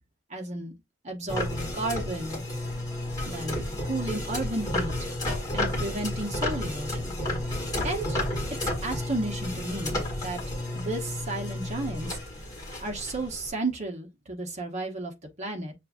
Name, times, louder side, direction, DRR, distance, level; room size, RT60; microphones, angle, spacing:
voice 1, 0.3-0.7 1.0-2.4 3.3-4.9 5.5-7.1 7.8-8.2 8.6-10.4 10.7-12.1 12.8-15.1 15.4-15.7, right 2 dB, 35° right, 1.0 m, -33 dB
sound 1, 1.3-13.5, left 1 dB, 20° left, 1.6 m, -32 dB
6.6 x 2.6 x 2.4 m
head